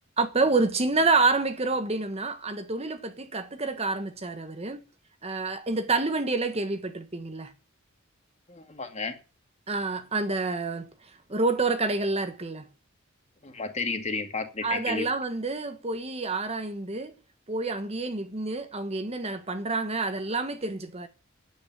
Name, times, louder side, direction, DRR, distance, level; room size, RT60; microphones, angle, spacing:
voice 1, 0.2-4.8 5.2-7.5 9.7-10.9 11.3-12.7 14.6-17.1 17.5-21.1, right 3 dB, 30° right, 1.4 m, -28 dB
voice 2, 8.5-9.2 13.4-15.1, left 4 dB, 30° left, 2.3 m, -32 dB
10.0 x 9.1 x 9.5 m
head